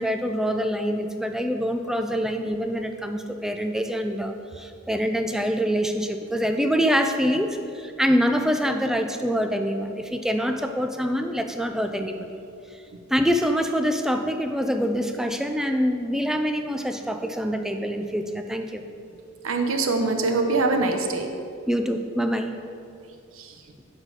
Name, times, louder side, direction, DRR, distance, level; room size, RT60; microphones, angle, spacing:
voice 1, 0.0-12.4 13.1-18.8 21.7-22.5, equal, ahead, 6 dB, 0.4 m, -25 dB
voice 2, 19.4-21.3 23.4-23.5, right 3 dB, 85° right, 5 dB, 0.9 m, -23 dB
9.7 x 4.2 x 6.4 m, 2.5 s
head